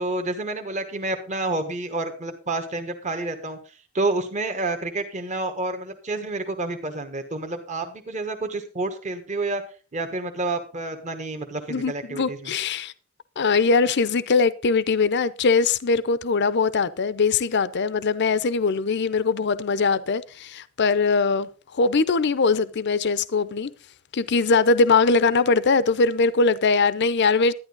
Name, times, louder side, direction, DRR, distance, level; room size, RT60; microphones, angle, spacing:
voice 1, 0.0-9.6 9.9-12.5, right 2 dB, 35° right, 1.3 m, -29 dB
voice 2, 11.7-12.9 13.4-23.7 24.1-27.5, left 4 dB, 55° left, 0.6 m, -21 dB
11.5 x 10.5 x 3.9 m
head